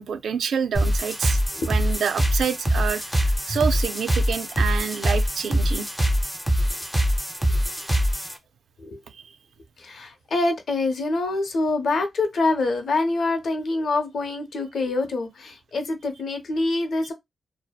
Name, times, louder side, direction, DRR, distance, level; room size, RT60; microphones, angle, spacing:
voice 1, 0.0-1.4 1.7-5.9 9.1-9.3, right 7 dB, 85° right, 0.3 m, -28 dB
sound 1, 0.8-8.3, equal, ahead, 0.4 m, -23 dB
voice 2, 9.8-17.1, left 2 dB, 60° left, 0.6 m, -25 dB
2.6 x 2.0 x 2.3 m
wide cardioid pair, 165°, 0 cm